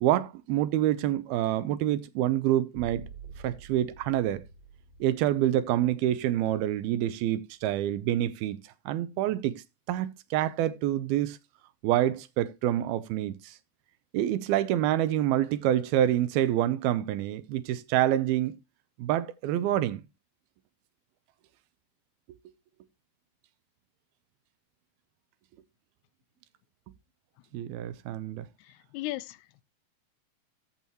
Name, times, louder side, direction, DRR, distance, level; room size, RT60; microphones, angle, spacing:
voice 1, 0.0-3.1 3.4-4.4 5.0-11.4 11.8-13.6 14.1-18.6 19.0-20.0 27.5-28.5, right 12 dB, 80° right, 2.6 m, -27 dB
sound 1, 2.7-6.7, right 4 dB, 15° right, 4.1 m, -48 dB
voice 2, 28.6-29.6, left 17 dB, 90° left, 2.7 m, -37 dB
14.0 x 7.1 x 3.0 m
omnidirectional pair, 4.5 m